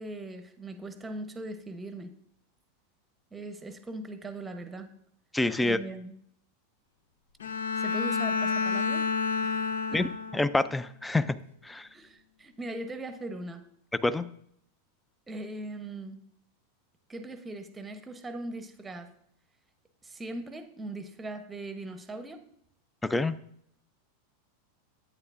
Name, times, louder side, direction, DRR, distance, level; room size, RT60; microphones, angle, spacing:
voice 1, 0.0-2.2 3.3-4.9 5.6-6.1 7.8-9.0 9.4-10.0 11.9-13.6 15.3-16.2 17.1-19.1 20.0-22.4, right 2 dB, 15° right, 9 dB, 0.8 m, -40 dB
voice 2, 5.3-5.8 9.9-10.1 10.3-11.4 11.6-11.9 14.0-14.2 23.0-23.4, left 2 dB, 10° left, 16 dB, 0.4 m, -26 dB
Bowed string instrument, 7.4-10.6, left 5 dB, 75° left, 0.5 m, -29 dB
9.7 x 8.7 x 2.5 m, 0.71 s
hypercardioid pair, 95°, 0 cm